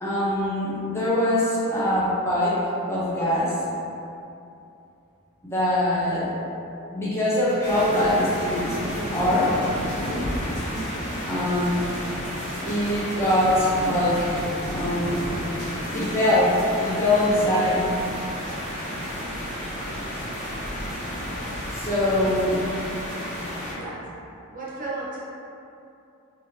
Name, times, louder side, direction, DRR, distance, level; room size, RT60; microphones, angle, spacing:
voice 1, 0.0-2.6 2.9-3.6 5.4-6.3 6.9-8.8 9.1-9.6 11.3-11.8 12.6-15.2 15.9-17.9 21.7-22.6, left 1 dB, 10° left, -9 dB, 0.6 m, -23 dB
sound 1, 7.6-23.7, equal, 35° left, 1.0 m, -31 dB
voice 2, 23.5-24.1 24.5-25.2, right 2 dB, 35° right, -6 dB, 0.6 m, -35 dB
3.5 x 2.7 x 2.7 m, 2.7 s
head